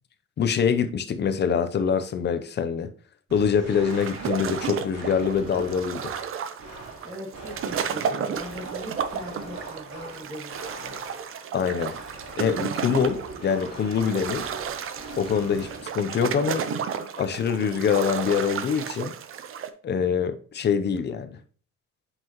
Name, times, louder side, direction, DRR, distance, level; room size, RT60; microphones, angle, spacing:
voice 1, 0.4-2.9 3.3-6.1 11.5-11.9 12.4-14.5 15.2-15.7 15.9-16.6 17.2-19.1 19.8-21.4, left 7 dB, 35° left, 0.6 m, -24 dB
sound 1, 3.3-11.4 11.8-15.9, right 2 dB, 65° right, 3.2 m, -42 dB
sound 2, 3.9-19.7, right 7 dB, 45° right, 0.7 m, -33 dB
voice 2, 7.0-11.0, equal, 15° right, 2.1 m, -40 dB
7.9 x 5.8 x 2.9 m
cardioid pair, 165°, 29 cm